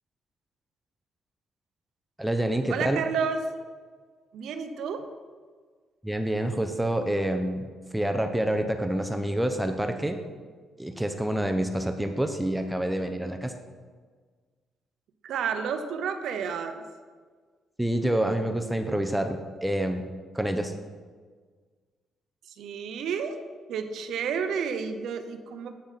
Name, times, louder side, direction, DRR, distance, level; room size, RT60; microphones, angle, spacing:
voice 1, 2.2-3.0 6.0-7.7 7.9-10.2 10.8-13.5 17.8-20.7, right 1 dB, 5° right, 6 dB, 0.6 m, -27 dB
voice 2, 2.7-3.4 4.3-5.1 15.2-16.8 22.5-23.4 23.7-25.7, right 6 dB, 75° right, 8 dB, 0.6 m, -31 dB
8.4 x 6.2 x 4.0 m, 1.5 s
cardioid pair, 90°, 0 cm